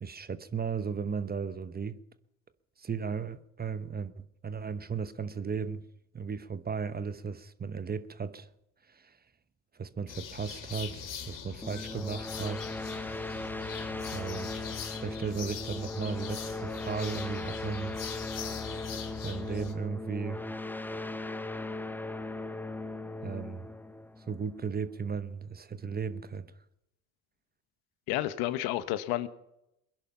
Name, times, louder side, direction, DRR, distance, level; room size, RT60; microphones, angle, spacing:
voice 1, 0.0-2.0 2.8-5.8 6.1-8.5 8.9-9.2 9.7-12.7 14.1-18.0 19.2-20.4 23.2-23.7 24.2-26.5, right 6 dB, 25° right, 1.0 m, -36 dB
sound 1, 10.1-19.7, left 8 dB, 55° left, 2.7 m, -42 dB
sound 2, 11.6-25.0, left 2 dB, 5° left, 0.8 m, -38 dB
voice 2, 28.1-29.3, left 14 dB, 70° left, 1.2 m, -30 dB
21.5 x 11.0 x 5.7 m
supercardioid pair, 80°, 39 cm